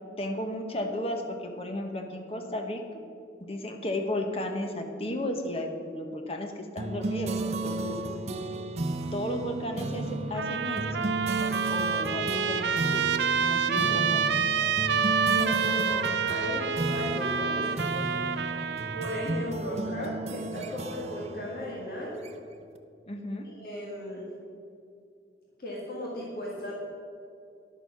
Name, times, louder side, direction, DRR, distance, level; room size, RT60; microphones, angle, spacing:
voice 1, 0.2-2.8 3.4-8.0 9.1-10.8 11.7-14.3 23.1-23.5, left 1 dB, 35° left, 4 dB, 1.0 m, -34 dB
sound 1, 6.8-22.6, right 2 dB, 40° right, 0.6 m, -34 dB
Trumpet, 10.3-19.5, right 6 dB, 85° right, 0.6 m, -28 dB
voice 2, 15.3-18.1 18.9-22.2 23.4-24.3 25.6-26.8, equal, 55° left, -4 dB, 1.8 m, -36 dB
11.0 x 6.8 x 5.9 m, 2.5 s
head